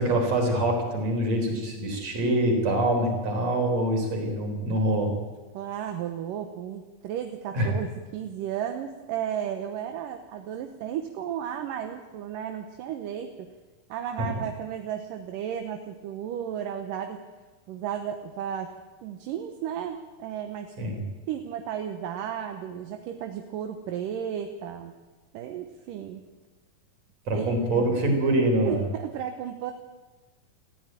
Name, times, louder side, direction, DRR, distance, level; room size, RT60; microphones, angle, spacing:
voice 1, 0.0-5.1 7.5-7.7 14.2-14.3 20.8-21.0 27.3-28.9, right 1 dB, 50° right, 3 dB, 5.0 m, -25 dB
voice 2, 5.5-13.5 13.9-17.2 17.7-18.7 19.0-20.7 21.3-24.9 25.3-26.3 27.3-27.9 28.6-29.7, right 9 dB, 75° right, 6 dB, 2.6 m, -34 dB
20.5 x 14.5 x 8.9 m, 1.2 s
omnidirectional pair, 4.1 m